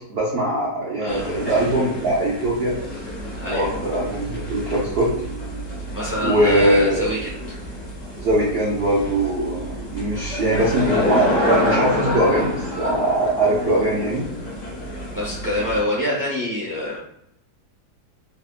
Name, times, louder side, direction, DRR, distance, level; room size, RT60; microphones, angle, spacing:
voice 1, 0.1-2.7 3.5-5.1 6.2-7.0 8.2-14.2, right 1 dB, 65° right, -6 dB, 0.6 m, -21 dB
voice 2, 1.0-1.3 3.4-3.7 5.9-7.4 15.1-17.0, left 1 dB, 15° right, -7 dB, 0.7 m, -26 dB
sound 1, 1.1-15.8, left 1 dB, 35° left, 0.7 m, -28 dB
2.8 x 2.6 x 2.4 m, 0.78 s
omnidirectional pair, 1.8 m